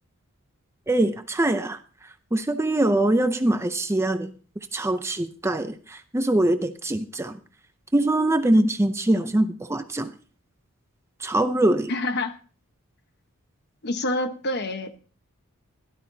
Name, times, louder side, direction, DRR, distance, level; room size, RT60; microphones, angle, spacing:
voice 1, 0.9-1.8 2.3-4.3 4.7-7.4 7.9-10.1 11.2-11.9, right 1 dB, 10° right, 9 dB, 0.6 m, -23 dB
voice 2, 11.9-12.3 13.8-15.0, left 2 dB, 50° left, 8 dB, 1.1 m, -27 dB
17.0 x 12.0 x 2.8 m, 0.39 s
head